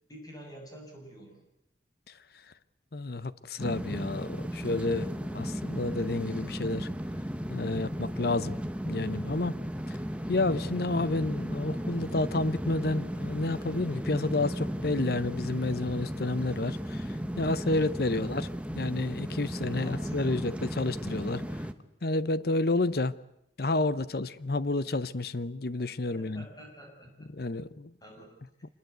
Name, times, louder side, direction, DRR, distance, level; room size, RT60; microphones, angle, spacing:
voice 1, 0.1-1.4 18.0-18.4 19.7-20.5 26.1-27.4 28.0-28.3, equal, 20° left, 7.0 m, -48 dB
voice 2, 2.9-6.9 7.5-8.6 8.8-9.6 9.9-10.0 10.3-18.5 18.7-21.7 22.0-23.1 23.6-26.4 27.3-27.9, left 2 dB, 55° left, 0.8 m, -30 dB
sound 1, 3.6-21.7, equal, 5° right, 1.0 m, -35 dB
25.5 x 21.0 x 8.1 m
head